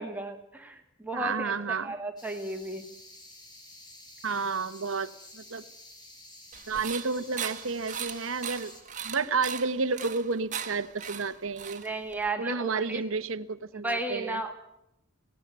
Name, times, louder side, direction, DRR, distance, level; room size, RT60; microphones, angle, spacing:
voice 1, 0.0-2.9 11.8-13.0 13.8-14.5, right 2 dB, 10° right, 4 dB, 1.9 m, -34 dB
voice 2, 1.1-1.9 4.2-5.6 6.7-8.7 9.0-11.8 12.4-14.4, right 4 dB, 70° right, 14 dB, 1.1 m, -31 dB
sound 1, 2.2-8.8, left 1 dB, 20° left, 4.9 m, -50 dB
sound 2, 6.5-12.3, right 8 dB, 40° right, 1.5 m, -39 dB
17.5 x 16.5 x 9.5 m, 0.79 s
head